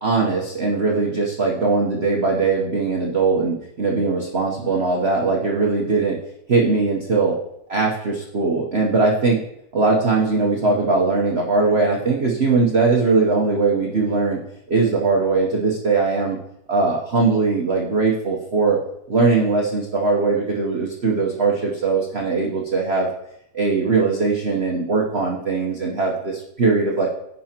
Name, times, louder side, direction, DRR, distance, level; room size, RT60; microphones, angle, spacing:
voice 1, 0.0-6.2 6.5-7.3 7.7-9.4 9.7-14.4 14.7-16.4 16.7-18.8 19.1-23.1 23.5-27.1, right 4 dB, 45° right, -1 dB, 0.9 m, -20 dB
16.0 x 5.4 x 2.9 m, 0.79 s
omnidirectional pair, 2.3 m